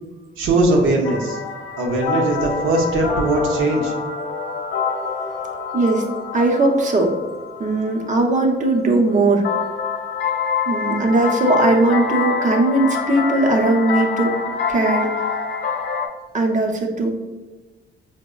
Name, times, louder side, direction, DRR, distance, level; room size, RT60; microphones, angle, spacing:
voice 1, 0.4-1.4 1.8-3.9, right 2 dB, 80° right, 0 dB, 0.6 m, -19 dB
sound 1, 1.0-8.5 9.4-16.1, left 5 dB, 70° left, 0.5 m, -26 dB
voice 2, 5.7-7.1 7.6-9.4 10.7-14.3 14.7-15.3 16.3-17.1, right 2 dB, 40° right, 2 dB, 0.6 m, -18 dB
4.8 x 2.0 x 2.3 m, 1.2 s
cardioid pair, 90°, 20 cm